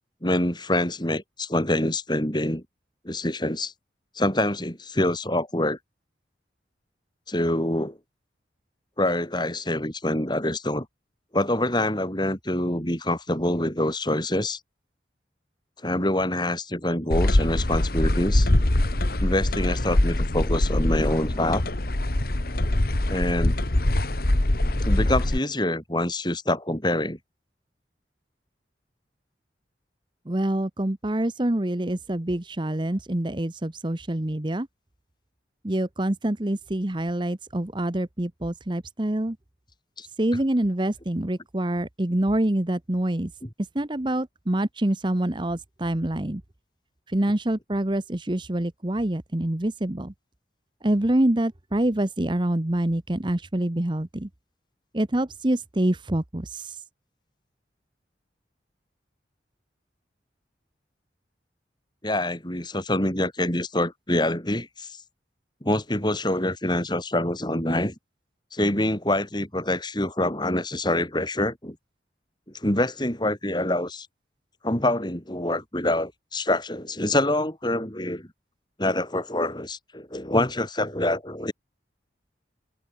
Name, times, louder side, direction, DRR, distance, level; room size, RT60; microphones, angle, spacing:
voice 1, 0.2-2.6 3.0-3.7 4.2-5.8 7.3-8.0 9.0-10.9 11.3-14.6 15.8-18.5 19.2-21.6 23.1-23.6 24.8-27.2 40.0-40.1 43.4-43.5 62.0-65.0 65.6-68.0 68.5-71.8 72.5-74.1 74.6-78.3 78.8-81.5, left 1 dB, 25° left, 6.9 m, -25 dB
sound 1, 17.1-25.4, left 1 dB, 55° left, 1.6 m, -23 dB
voice 2, 30.3-34.7 35.6-39.4 40.2-43.3 43.7-46.4 47.1-50.1 50.8-54.3 54.9-56.8, right 1 dB, 25° right, 1.0 m, -26 dB
head